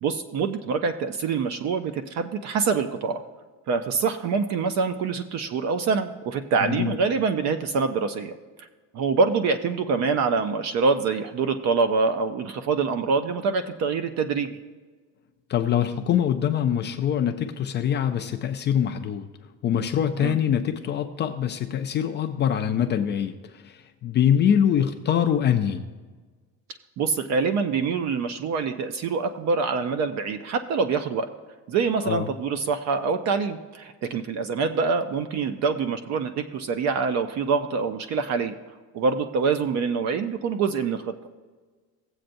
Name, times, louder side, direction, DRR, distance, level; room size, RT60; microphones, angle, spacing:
voice 1, 0.0-3.2 3.7-8.7 8.9-14.5 20.2-20.4 27.0-31.3 31.7-38.6 38.9-41.1, right 5 dB, 45° right, 9 dB, 0.6 m, -25 dB
voice 2, 6.6-7.0 15.5-19.3 19.6-25.9 32.0-32.3, left 9 dB, 30° left, 6 dB, 0.4 m, -24 dB
18.0 x 7.7 x 2.6 m, 1.4 s
cardioid pair, 160°, 37 cm